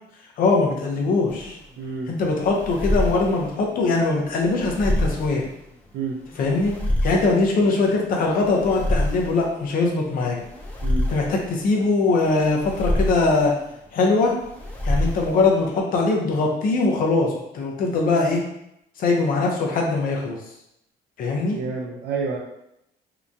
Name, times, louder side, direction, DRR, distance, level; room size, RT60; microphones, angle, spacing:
voice 1, 0.4-1.6 2.1-5.4 6.4-6.7 7.0-10.4 11.1-13.5 13.9-14.3 14.8-18.4 19.0-20.4 21.2-21.6, left 3 dB, 55° left, 0 dB, 0.7 m, -21 dB
sound 1, 1.3-15.8, left 1 dB, 10° left, 0.6 m, -28 dB
voice 2, 1.8-2.1 5.9-6.2 10.8-11.1 21.5-22.4, right 4 dB, 65° right, -2 dB, 0.5 m, -29 dB
2.9 x 2.2 x 2.5 m, 0.81 s
cardioid pair, 110°, 17 cm